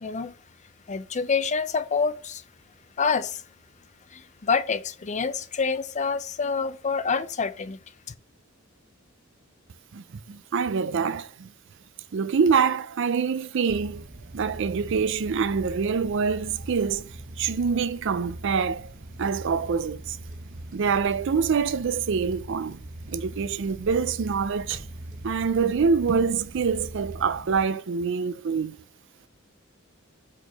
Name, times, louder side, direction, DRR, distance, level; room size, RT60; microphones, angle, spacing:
voice 1, 0.0-0.3 0.9-2.4 3.0-3.4 4.1-7.8, left 5 dB, 35° left, 0.5 m, -27 dB
voice 2, 9.9-11.5 12.1-14.0 14.3-17.1 17.4-18.9 19.2-20.2 20.7-22.8 23.1-24.8 25.2-28.8, right 5 dB, 65° right, 0.4 m, -25 dB
sound 1, 13.7-27.6, right 1 dB, 45° right, 0.9 m, -41 dB
sound 2, 20.3-21.6 21.9-22.4 22.7-25.5, right 1 dB, 20° right, 1.9 m, -50 dB
4.9 x 4.4 x 5.2 m
head